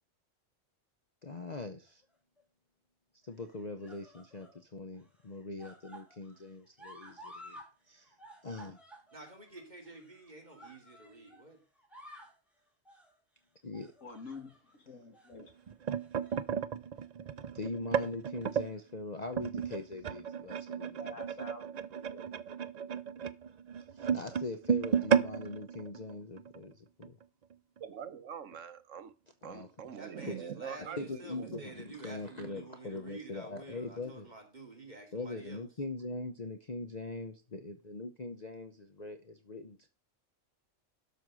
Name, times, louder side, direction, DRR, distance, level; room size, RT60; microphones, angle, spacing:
voice 1, 1.2-2.0 3.2-7.6 7.9-8.1 8.4-8.8 13.6-13.9 17.5-21.1 23.9-27.2 29.4-29.7 30.3-30.4 31.0-34.3 35.1-39.9, left 3 dB, 35° left, 0.9 m, -42 dB
sound 1, 1.8-2.4 3.3-4.6 4.9-7.7 8.0-11.4 11.8-12.4 12.8-13.1 13.7-14.8 15.1-15.3 16.0-16.5 16.9-17.0 18.1-18.8 19.7-19.8, equal, ahead, 2.8 m, -54 dB
voice 2, 9.1-11.6 30.0-35.6, right 2 dB, 35° right, 2.8 m, -50 dB
voice 3, 14.0-14.6 14.9-15.5 21.0-21.6 22.1-22.2 24.0-24.1, left 4 dB, 75° left, 2.5 m, -47 dB
sound 2, 15.4-18.7 19.3-26.6 27.0-27.2 27.5-27.8 28.5-28.6, right 7 dB, 55° right, 0.5 m, -33 dB
voice 4, 27.8-29.1 29.4-31.7, right 8 dB, 75° right, 1.1 m, -44 dB
12.0 x 4.6 x 6.3 m
omnidirectional pair, 1.3 m